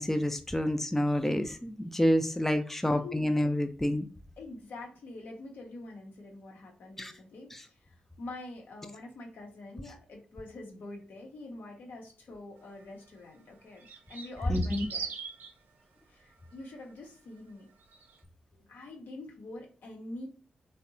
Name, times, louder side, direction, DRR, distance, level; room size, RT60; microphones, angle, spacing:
voice 1, 0.0-4.1 7.0-7.1 7.5-7.6 14.5-14.9, equal, 10° left, 7 dB, 0.3 m, -28 dB
voice 2, 2.8-3.3 4.4-15.1 16.1-17.7 18.5-20.3, left 2 dB, 75° left, 1 dB, 0.7 m, -45 dB
sound 1, 12.8-12.9 13.8-15.5 17.8-18.2, right 5 dB, 75° right, 0.4 m, -40 dB
2.6 x 2.0 x 2.6 m, 0.39 s
supercardioid pair, 40°, 3 cm